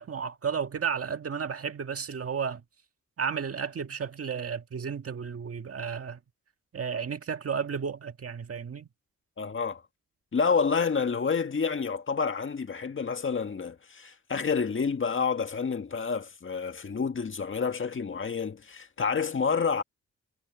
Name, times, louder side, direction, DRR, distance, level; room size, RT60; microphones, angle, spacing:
voice 1, 0.0-2.6 3.2-6.2 6.7-8.9, right 6 dB, 50° right, 1.8 m, -33 dB
voice 2, 9.4-9.8 10.3-19.8, left 5 dB, 45° left, 1.8 m, -29 dB
cardioid pair, 80°, 29 cm